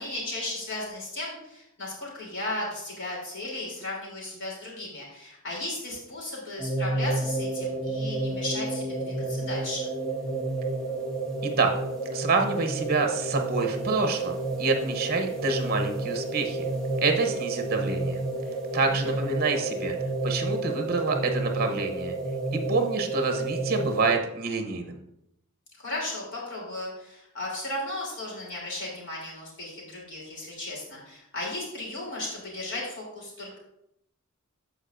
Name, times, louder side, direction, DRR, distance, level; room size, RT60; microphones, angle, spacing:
voice 1, 0.0-9.9 19.0-19.1 25.8-33.6, left 1 dB, 60° left, -4 dB, 3.1 m, -35 dB
sound 1, 6.6-24.2, right 2 dB, 5° left, 1.4 m, -30 dB
voice 2, 12.1-16.7 17.0-18.2 18.7-20.0 20.2-22.1 22.7-25.0, right 3 dB, 45° right, 5 dB, 0.8 m, -27 dB
13.5 x 4.8 x 2.5 m, 0.80 s
head